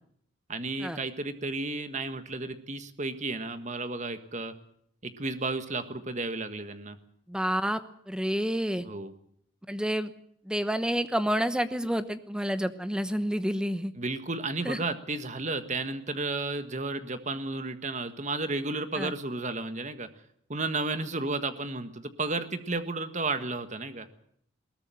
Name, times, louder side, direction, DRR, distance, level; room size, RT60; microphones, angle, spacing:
voice 1, 0.5-4.5 5.0-7.0 8.8-9.1 14.0-20.1 20.5-24.1, right 3 dB, 35° right, 10 dB, 1.6 m, -33 dB
voice 2, 7.3-7.8 8.1-8.8 9.7-10.1 10.4-13.9 14.6-14.8 18.9-19.1, equal, 5° right, 11 dB, 1.0 m, -29 dB
21.0 x 18.5 x 7.7 m, 0.68 s
head